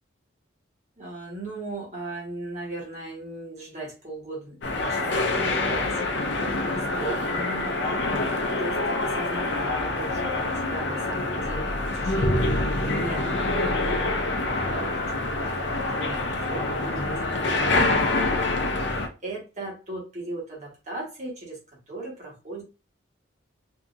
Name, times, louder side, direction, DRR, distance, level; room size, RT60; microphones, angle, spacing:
voice 1, 1.0-22.6, right 2 dB, 35° right, -3 dB, 1.3 m, -38 dB
sound 1, 4.6-19.1, left 2 dB, 60° left, 0.5 m, -26 dB
2.8 x 2.6 x 2.5 m, 0.30 s
head